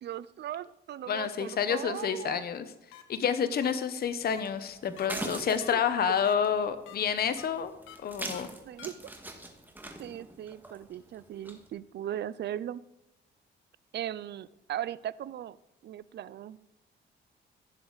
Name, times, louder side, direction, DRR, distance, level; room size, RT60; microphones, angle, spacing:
voice 1, 0.0-2.5 5.1-5.8 8.7-8.9 10.0-12.8 13.9-15.6 15.8-16.6, right 11 dB, 60° right, 19 dB, 0.5 m, -38 dB
voice 2, 1.1-2.6 3.1-7.7 8.0-8.5, left 7 dB, 50° left, 11 dB, 0.8 m, -29 dB
sound 1, 2.9-3.0 3.6-3.7 4.3-4.4 5.0-5.1 5.6-5.7 6.2-6.3 6.9-7.0 7.4-7.5 7.9-8.0 8.3-8.4 8.8-8.9, left 11 dB, 85° left, 1.0 m, -48 dB
sound 2, 4.0-11.7, right 1 dB, 10° right, 1.8 m, -44 dB
16.0 x 6.9 x 4.0 m, 0.96 s
cardioid pair, 90°, 20 cm